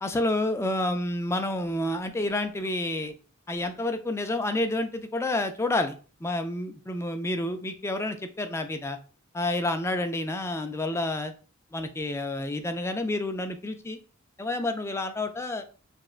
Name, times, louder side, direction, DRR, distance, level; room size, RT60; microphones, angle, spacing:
voice 1, 0.0-3.1 3.5-9.0 9.3-11.3 11.7-14.0 14.4-15.6, left 2 dB, 15° left, 7 dB, 0.3 m, -29 dB
5.9 x 2.2 x 2.4 m, 0.37 s
head